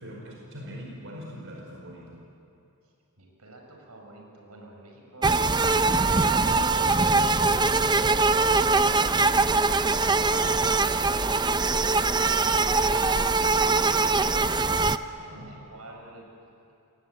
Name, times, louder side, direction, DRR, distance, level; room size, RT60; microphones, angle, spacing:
voice 1, 0.0-2.2 15.1-15.5, equal, 60° right, -1 dB, 4.9 m, -42 dB
voice 2, 2.8-7.1 7.7-9.6 10.0-14.8 15.3-16.3, right 2 dB, 90° right, 1 dB, 6.8 m, -48 dB
sound 1, 5.2-15.0, right 3 dB, 20° right, 0.6 m, -22 dB
29.0 x 23.0 x 8.9 m, 2.7 s
head